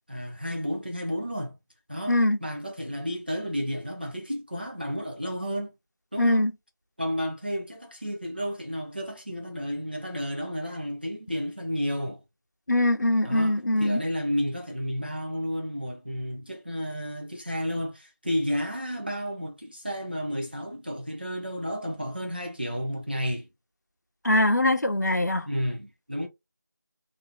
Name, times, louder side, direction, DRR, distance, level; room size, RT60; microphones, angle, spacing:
voice 1, 0.1-1.6 1.9-5.7 6.1-6.4 7.0-12.2 13.2-23.5 25.4-26.3, equal, 30° right, 0.6 m, -32 dB
voice 2, 2.1-2.4 6.2-6.5 12.7-14.0 24.2-25.5, left 1 dB, 65° left, 0.8 m, -22 dB
2.8 x 2.6 x 3.5 m
figure-of-eight pair, 175°, 10 cm